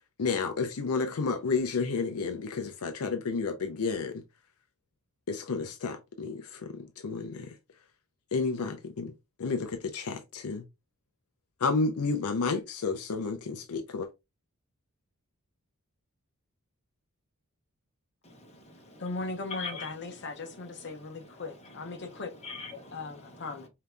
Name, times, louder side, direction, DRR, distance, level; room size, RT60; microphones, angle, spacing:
voice 1, 0.2-4.2 5.3-7.5 8.3-9.1 9.4-10.6 11.6-14.1, left 4 dB, 75° left, 0.6 m, -31 dB
voice 2, 18.2-19.0 19.5-19.9 20.8-20.9 21.9-22.1 22.4-23.4, left 4 dB, 30° left, 1.1 m, -42 dB
voice 3, 19.0-22.3 22.9-23.7, left 3 dB, 50° left, 0.9 m, -38 dB
5.1 x 2.8 x 2.3 m
head